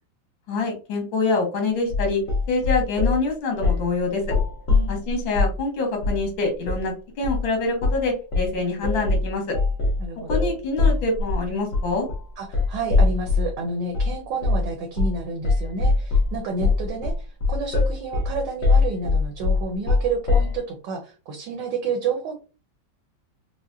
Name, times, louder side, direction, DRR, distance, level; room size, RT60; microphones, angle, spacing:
voice 1, 0.5-2.2 2.5-4.2 4.9-9.6 10.3-12.1, left 3 dB, 85° left, 2 dB, 1.9 m, -25 dB
sound 1, 1.9-3.2 3.6-3.9 4.2-5.6 6.0-6.3 6.6-6.9 7.2-7.5 7.8-8.1 8.3-13.5 13.9-14.1 14.4-14.7 15.0-15.2 15.4-20.6, left 3 dB, 50° left, 1.2 m, -22 dB
voice 2, 10.0-10.6 12.4-22.3, right 4 dB, 75° right, 2 dB, 1.4 m, -30 dB
4.8 x 2.2 x 2.6 m, 0.33 s
omnidirectional pair, 2.1 m